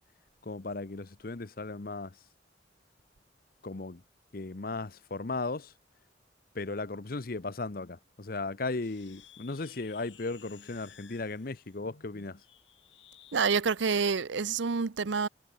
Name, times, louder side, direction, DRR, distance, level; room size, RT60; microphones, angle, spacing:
voice 1, 0.4-2.2 3.6-4.0 4.3-5.7 6.5-12.4, left 3 dB, 50° left, 0.8 m, -36 dB
sound 1, 8.8-13.5, left 9 dB, 85° left, 5.5 m, -57 dB
voice 2, 13.3-15.3, right 5 dB, 80° right, 0.7 m, -28 dB
head